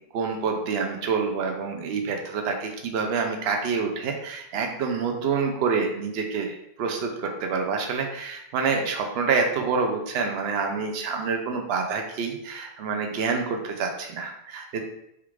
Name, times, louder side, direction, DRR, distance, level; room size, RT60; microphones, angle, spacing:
voice 1, 0.1-14.8, right 5 dB, 70° right, 3 dB, 0.8 m, -27 dB
3.5 x 2.4 x 3.1 m, 0.80 s
omnidirectional pair, 1.1 m